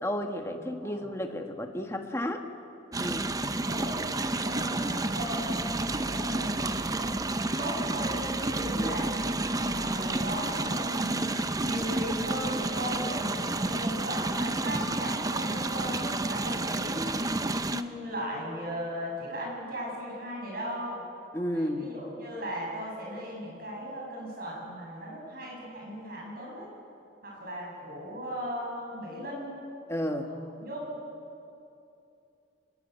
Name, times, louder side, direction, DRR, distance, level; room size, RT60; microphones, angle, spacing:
voice 1, 0.0-2.4 3.0-3.4 8.8-9.0 21.3-21.9 29.9-30.3, left 1 dB, 15° left, 4 dB, 1.6 m, -32 dB
voice 2, 0.6-1.1 3.4-4.0 4.4-9.1 9.5-11.3 11.6-17.4 17.7-21.0 21.5-26.7 27.2-29.6 30.2-30.9, equal, 50° right, -2 dB, 7.9 m, -37 dB
sound 1, 2.9-17.8, right 2 dB, 20° right, 0.7 m, -30 dB
26.5 x 20.5 x 8.2 m, 2.7 s
head